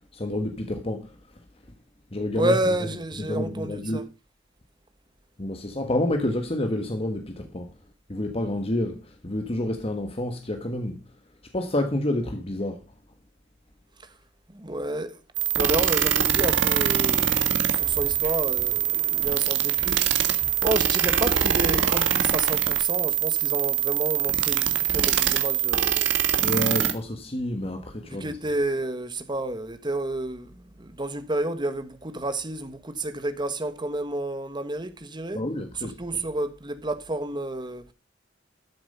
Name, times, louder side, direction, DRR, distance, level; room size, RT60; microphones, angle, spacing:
voice 1, 0.1-1.2 2.1-2.5 3.2-4.0 5.4-7.7 8.1-11.0 11.5-12.8 26.4-28.3 35.3-36.2, left 1 dB, 30° left, 1.4 m, -29 dB
voice 2, 2.3-4.0 14.5-15.2 15.6-19.9 20.6-26.2 28.0-35.4 36.0-37.9, right 1 dB, 25° right, 1.4 m, -30 dB
sound 1, 15.4-26.9, right 9 dB, 70° right, 1.6 m, -23 dB
sound 2, 17.7-22.8, right 1 dB, 45° right, 4.0 m, -43 dB
13.0 x 7.4 x 5.4 m
head